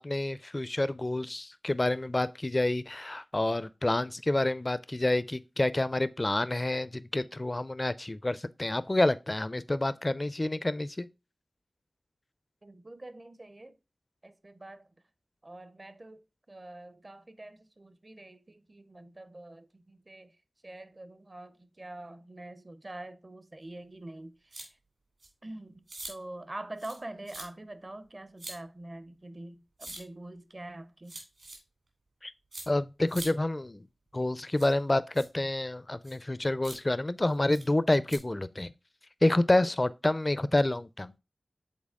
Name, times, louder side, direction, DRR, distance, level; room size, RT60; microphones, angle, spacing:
voice 1, 0.0-11.1 32.2-32.3 32.7-33.9 34.1-38.7 39.2-41.1, left 1 dB, 30° left, 0.4 m, -28 dB
voice 2, 12.6-13.8 14.2-14.9 15.4-20.3 20.6-24.8 25.4-31.2, right 1 dB, 40° right, 0.6 m, -45 dB
sound 1, 24.5-24.7 25.2-25.3 25.9-26.1 26.8-27.0 27.3-27.5 28.4-28.6 29.8-30.0 31.1-31.6 32.5-32.7 33.1-33.3 34.5-34.7 35.1-35.3 36.0-36.2 36.6-36.8 37.5-37.6 38.1-38.2, right 2 dB, 75° right, 2.5 m, -43 dB
7.4 x 4.0 x 3.5 m
wide cardioid pair, 80°, 0 cm